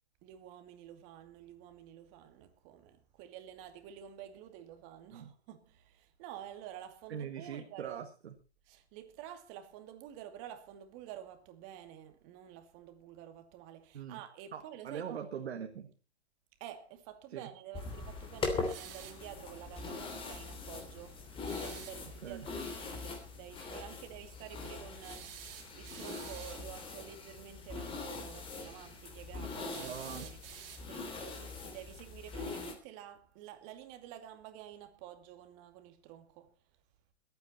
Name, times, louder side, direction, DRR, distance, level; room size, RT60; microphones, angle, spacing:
voice 1, 0.2-8.0 8.7-15.2 16.6-21.2 21.6-25.4 25.7-30.4 30.8-36.5, right 11 dB, 35° right, 2.4 m, -50 dB
voice 2, 7.1-8.3 13.9-14.2 14.5-15.9 17.3-17.5 22.2-22.5 29.8-30.3, right 8 dB, 75° right, 2.0 m, -42 dB
sound 1, 17.7-32.7, left 4 dB, 15° left, 2.9 m, -42 dB
sound 2, 18.6-19.3 21.4-22.0 25.0-26.7 29.7-31.1, right 9 dB, 55° right, 3.0 m, -50 dB
21.5 x 9.4 x 4.2 m
hypercardioid pair, 140°, 33 cm